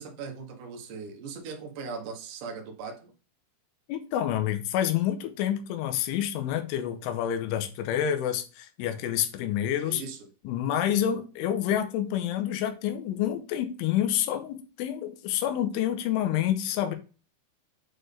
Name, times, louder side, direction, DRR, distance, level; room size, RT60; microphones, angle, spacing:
voice 1, 0.0-3.1 9.8-10.2, right 5 dB, 70° right, 2.0 m, -39 dB
voice 2, 3.9-10.0 10.4-16.9, left 10 dB, 85° left, 3.2 m, -28 dB
7.9 x 4.5 x 3.3 m
omnidirectional pair, 5.6 m